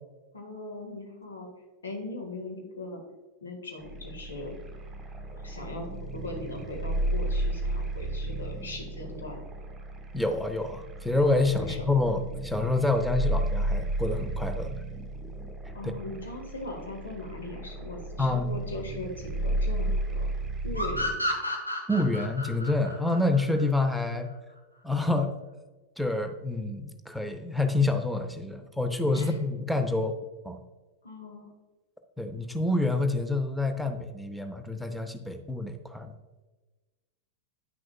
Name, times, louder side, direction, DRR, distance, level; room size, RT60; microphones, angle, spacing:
voice 1, 0.3-1.5 1.8-3.0 3.4-4.6 5.4-9.5 11.5-11.9 15.7-20.3 20.6-21.3 29.1-29.3 31.0-31.5, left 2 dB, 70° left, 2 dB, 1.5 m, -39 dB
sound 1, 3.8-21.2, right 1 dB, 15° right, 1.4 m, -33 dB
voice 2, 10.1-14.7 18.2-18.5 21.9-24.3 24.8-25.3 26.0-30.1 30.4-30.6 32.2-36.1, left 2 dB, ahead, 7 dB, 0.7 m, -27 dB
sound 2, 20.7-24.1, left 1 dB, 85° left, 1.1 m, -32 dB
9.4 x 6.1 x 2.2 m, 1.2 s
figure-of-eight pair, 90°, 0 cm